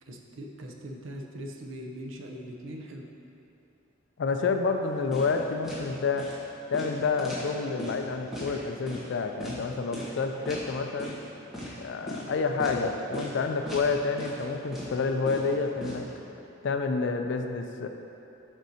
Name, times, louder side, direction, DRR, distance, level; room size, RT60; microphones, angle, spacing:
voice 1, 0.0-3.1, equal, 85° right, 1 dB, 0.7 m, -41 dB
voice 2, 4.2-6.3 6.7-11.2 11.8-16.1 16.6-17.9, left 4 dB, 65° left, 5 dB, 0.4 m, -29 dB
sound 1, 5.1-5.4 5.6-5.8 6.2-6.4 6.7-8.0 8.3-8.5 8.9-9.0 9.4-9.6 9.9-10.2 10.4-10.6 11.0-11.2 11.5-11.7 12.1-12.3 12.6-12.8 13.1-13.3 13.7-13.9 14.2-14.4 14.7-15.9, equal, ahead, 1.2 m, -37 dB
7.6 x 6.2 x 2.8 m, 2.9 s
head